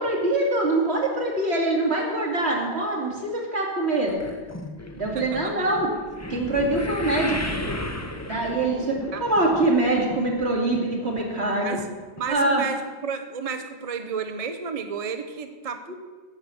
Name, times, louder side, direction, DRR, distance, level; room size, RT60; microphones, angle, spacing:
voice 1, 0.0-4.3 4.9-5.9 6.3-7.4 8.2-11.8 12.3-12.6 15.9-16.0, right 2 dB, 65° right, -1 dB, 2.7 m, -24 dB
sound 1, 4.1-10.5 10.7-11.2 11.8-11.9 12.2-12.3, left 1 dB, 15° left, 0.7 m, -34 dB
voice 2, 5.2-5.5 9.1-9.2 11.5-11.8 12.2-15.9, right 6 dB, 40° right, 7 dB, 0.7 m, -32 dB
10.5 x 7.7 x 6.9 m, 1.4 s
omnidirectional pair, 1.2 m